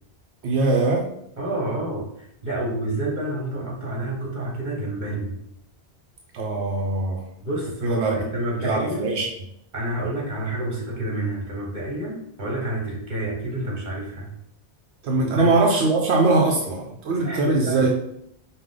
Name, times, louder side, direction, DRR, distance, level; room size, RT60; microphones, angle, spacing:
voice 1, 0.4-1.0 6.3-7.2 7.8-8.2 8.6-9.3 15.0-17.9, right 3 dB, 85° right, 0 dB, 0.9 m, -21 dB
voice 2, 1.4-5.4 7.4-9.2 9.7-14.3 15.2-15.5 17.1-17.9, right 1 dB, 45° right, -3 dB, 1.5 m, -29 dB
4.8 x 2.4 x 3.7 m, 0.73 s
omnidirectional pair, 1.1 m